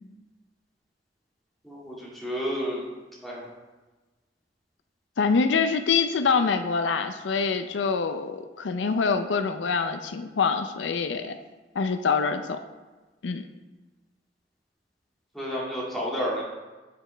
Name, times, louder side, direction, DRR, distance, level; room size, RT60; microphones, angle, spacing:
voice 1, 1.6-2.8 3.2-3.5 15.3-16.4, equal, ahead, -6 dB, 2.1 m, -31 dB
voice 2, 5.2-11.4 11.7-12.6 13.2-13.5, left 5 dB, 90° left, 8 dB, 0.5 m, -25 dB
8.5 x 7.7 x 3.3 m, 1.2 s
head